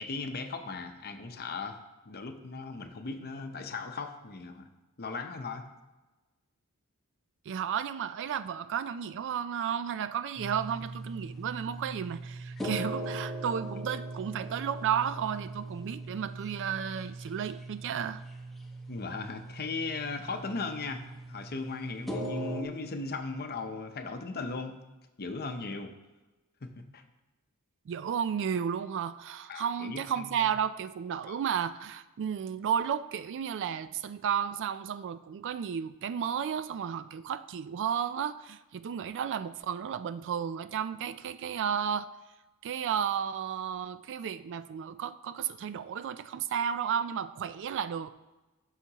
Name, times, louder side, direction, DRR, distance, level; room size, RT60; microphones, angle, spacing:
voice 1, 0.0-4.7 5.0-5.6 12.6-12.7 18.9-24.8 25.2-25.9 26.6-27.0 29.5-30.5 31.3-31.4, left 4 dB, 45° left, 0.7 m, -38 dB
voice 2, 7.5-18.2 27.9-42.1 42.6-48.1, right 8 dB, 55° right, 0.3 m, -33 dB
sound 1, 10.4-22.6, right 1 dB, ahead, 0.8 m, -40 dB
12.5 x 5.7 x 2.9 m
head